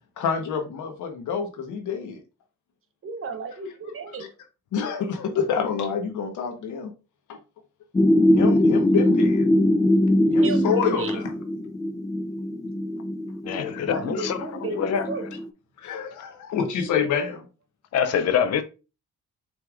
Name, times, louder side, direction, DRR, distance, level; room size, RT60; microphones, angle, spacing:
voice 1, 0.2-2.2 4.7-6.9 7.3-7.4 8.4-9.5 10.3-11.3 13.5-13.9 14.1-14.2 15.8-17.5, left 6 dB, 75° left, 1.1 m, -27 dB
voice 2, 3.0-4.3 10.4-11.2 13.9-15.3, right 4 dB, 45° right, 0.9 m, -33 dB
sound 1, 7.9-15.5, left 1 dB, 15° left, 0.3 m, -22 dB
voice 3, 13.4-15.1 17.9-18.6, left 8 dB, 55° left, 0.6 m, -25 dB
6.1 x 3.3 x 2.4 m
cardioid pair, 90°, 30 cm